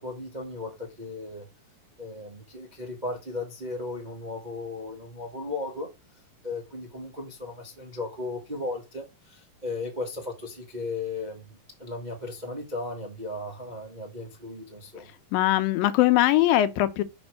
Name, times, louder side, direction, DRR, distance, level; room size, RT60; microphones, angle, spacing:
voice 1, 0.0-1.4 2.0-5.9 6.4-15.1, left 2 dB, 30° right, 0.8 m, -36 dB
voice 2, 15.3-17.0, left 14 dB, 90° left, 2.6 m, -21 dB
5.5 x 5.3 x 6.2 m
omnidirectional pair, 4.0 m